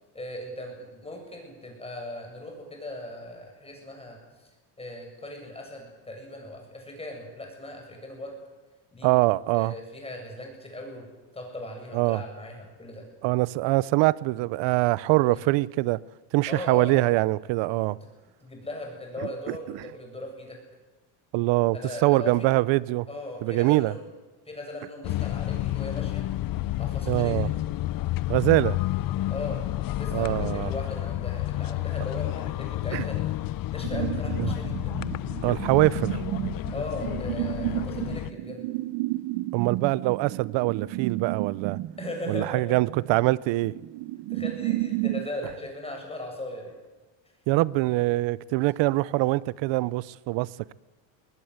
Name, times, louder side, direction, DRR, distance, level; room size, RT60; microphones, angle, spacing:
voice 1, 0.1-4.5 4.8-8.3 8.9-9.1 9.5-11.1 11.3-13.0 15.3-15.4 16.5-17.1 18.4-20.6 21.7-22.5 23.1-24.0 24.5-26.3 26.8-27.5 29.3-29.6 30.0-33.3 33.7-35.0 36.7-38.6 42.0-42.7 44.3-46.7 48.0-48.1, left 1 dB, 10° left, 7.6 m, -38 dB
voice 2, 9.0-9.7 11.9-12.2 13.2-16.0 16.3-18.0 19.5-19.8 21.3-21.8 22.0-23.1 23.4-23.9 27.1-27.5 28.3-28.8 30.1-30.7 32.9-33.0 34.4-34.5 35.4-36.2 39.5-41.8 42.3-43.7 47.5-50.7, right 20 dB, 65° right, 0.9 m, -23 dB
sound 1, 25.0-38.3, left 15 dB, 45° left, 0.8 m, -30 dB
sound 2, 33.8-45.3, right 17 dB, 80° right, 1.4 m, -32 dB
21.0 x 21.0 x 8.1 m
cardioid pair, 140°, 49 cm